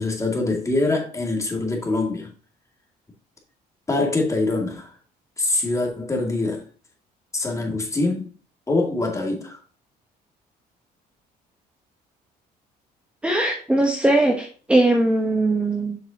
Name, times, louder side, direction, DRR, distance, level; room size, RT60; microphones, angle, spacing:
voice 1, 0.0-2.3 3.9-4.9 5.4-6.6 7.3-8.3 8.7-9.6, left 2 dB, 20° left, 2.4 m, -24 dB
voice 2, 13.2-16.0, right 2 dB, 5° right, 1.3 m, -20 dB
7.8 x 5.9 x 2.9 m
cardioid pair, 110°, 17 cm